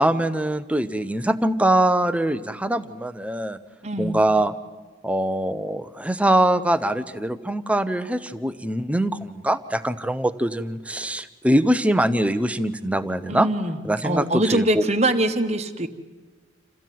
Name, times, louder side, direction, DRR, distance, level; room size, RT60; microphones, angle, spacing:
voice 1, 0.0-3.6 4.0-4.5 5.0-13.5 13.8-14.8, right 1 dB, 5° right, 11 dB, 0.7 m, -23 dB
voice 2, 3.8-4.2 13.3-15.9, right 1 dB, 30° right, 7 dB, 1.2 m, -23 dB
28.0 x 15.0 x 9.3 m, 1.4 s
head